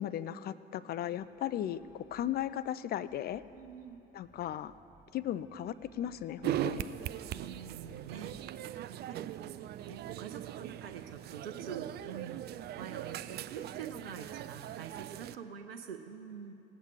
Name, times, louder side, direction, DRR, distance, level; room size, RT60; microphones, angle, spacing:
voice 1, 0.0-3.4 4.1-4.7 5.1-6.9, left 11 dB, 35° left, 15 dB, 0.4 m, -36 dB
sound 1, 1.1-8.3, right 1 dB, 5° right, 1.2 m, -62 dB
voice 2, 3.5-4.0 7.3-8.3 8.9-16.5, right 7 dB, 80° right, 6 dB, 0.6 m, -46 dB
sound 2, 6.4-15.4, right 12 dB, 35° right, 0.4 m, -40 dB
18.0 x 8.2 x 4.8 m, 2.9 s
figure-of-eight pair, 55°, 29 cm